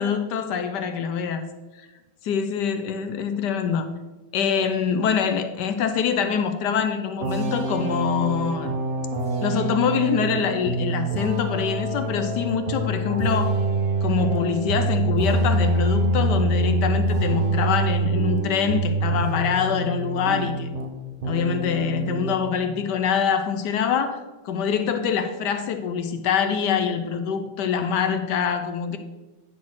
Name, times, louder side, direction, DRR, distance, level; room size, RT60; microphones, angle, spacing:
voice 1, 0.0-1.5 1.8-1.9 2.2-3.9 4.3-8.7 9.4-13.6 14.0-20.7 21.2-29.0, left 7 dB, 70° left, 9 dB, 1.1 m, -25 dB
sound 1, 7.2-20.9 21.2-22.4, right 2 dB, 90° right, 0.4 m, -25 dB
9.7 x 4.2 x 6.1 m, 1.1 s
omnidirectional pair, 2.2 m